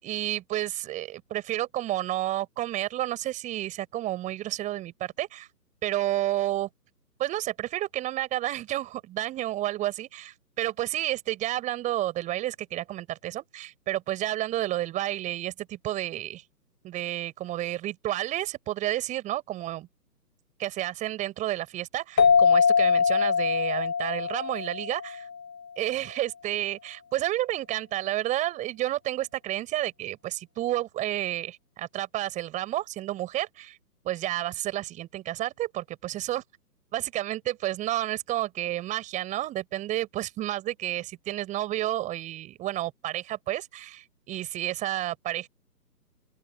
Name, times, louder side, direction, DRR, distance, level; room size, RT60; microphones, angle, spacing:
voice 1, 0.0-5.5 5.8-6.7 7.2-16.4 16.8-19.9 20.6-25.3 25.8-33.8 34.0-36.4 36.9-45.5, right 14 dB, 15° right, 5.8 m, -31 dB
sound 1, 22.2-25.5, left 6 dB, 90° left, 0.9 m, -23 dB
open air
figure-of-eight pair, 145°, 49 cm